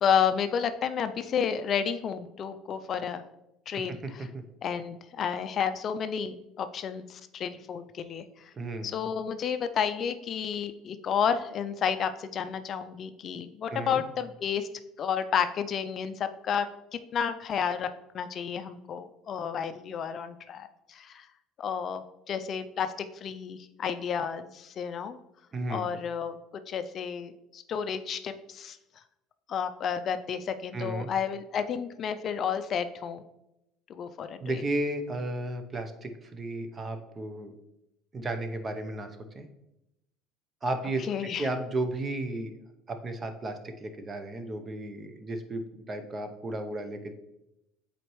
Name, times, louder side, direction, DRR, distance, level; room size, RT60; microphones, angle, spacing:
voice 1, 0.0-3.2 3.7-4.3 4.6-8.2 8.8-14.7 15.0-16.7 17.1-17.9 18.1-21.3 21.6-25.2 25.7-26.4 26.7-28.8 29.5-33.2 33.9-34.6 41.1-41.5, left 7 dB, 45° left, 10 dB, 0.4 m, -31 dB
voice 2, 8.5-9.1 13.7-14.0 25.5-25.9 30.7-31.1 34.4-37.5 38.1-39.1 39.3-39.4 40.6-42.6 42.9-45.6 45.9-47.1, right 2 dB, 25° right, 8 dB, 0.8 m, -34 dB
7.9 x 4.2 x 3.1 m, 0.88 s
cardioid pair, 115°, 0 cm